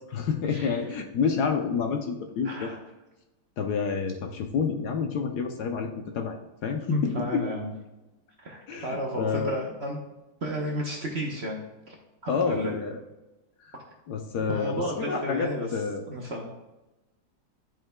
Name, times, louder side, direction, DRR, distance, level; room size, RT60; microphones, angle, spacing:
voice 1, 0.1-2.7 3.6-7.4 8.7-9.5 12.3-13.0 13.6-13.8 14.1-16.0, left 6 dB, 70° left, 5 dB, 1.1 m, -29 dB
voice 2, 2.4-2.8 6.9-7.7 8.4-10.0 10.4-11.6 11.9-12.0 12.2-12.7 14.5-15.7 16.1-16.5, equal, 45° right, -1 dB, 0.9 m, -32 dB
11.0 x 5.2 x 2.2 m, 1.0 s
omnidirectional pair, 2.0 m